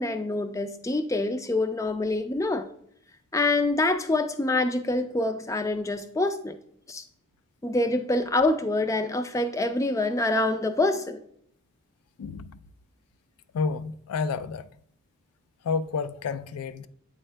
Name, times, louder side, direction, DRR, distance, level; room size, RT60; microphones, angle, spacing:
voice 1, 0.0-2.7 3.3-6.6 6.9-7.0 7.6-11.2, left 2 dB, 15° left, 0.3 m, -26 dB
voice 2, 12.2-12.6 13.5-14.7 15.6-16.9, left 4 dB, 90° left, 0.4 m, -30 dB
8.8 x 3.6 x 3.3 m
head